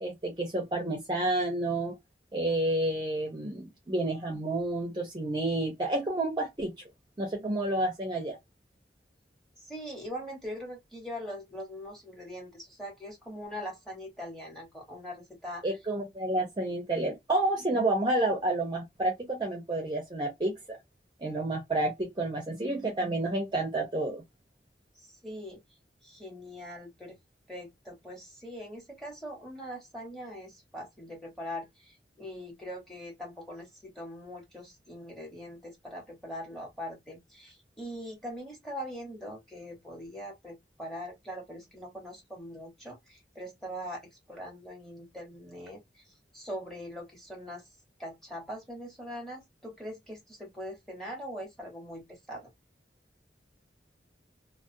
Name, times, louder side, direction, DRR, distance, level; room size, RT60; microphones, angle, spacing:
voice 1, 0.0-2.0 2.3-6.7 7.2-8.4 15.6-20.8 21.2-24.2, right 2 dB, 25° right, 0.5 m, -30 dB
voice 2, 9.6-15.6 25.2-25.6 26.0-27.1 27.5-45.8 46.3-47.6 48.0-52.4, equal, ahead, 1.0 m, -42 dB
2.3 x 2.1 x 2.5 m
head